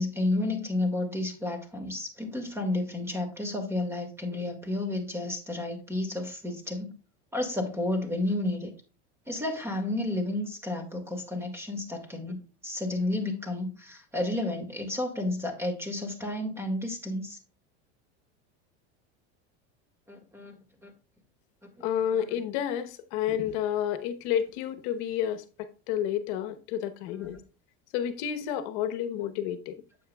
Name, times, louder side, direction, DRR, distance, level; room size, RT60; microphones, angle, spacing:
voice 1, 0.0-6.9 7.3-8.7 9.3-17.4 20.1-20.9 21.6-21.9 22.1-22.3 27.2-27.3, left 2 dB, 10° right, 1.9 m, -31 dB
voice 2, 21.8-27.4 27.9-29.8, left 10 dB, 60° left, 1.0 m, -30 dB
9.3 x 7.9 x 2.3 m
supercardioid pair, 125°, 33 cm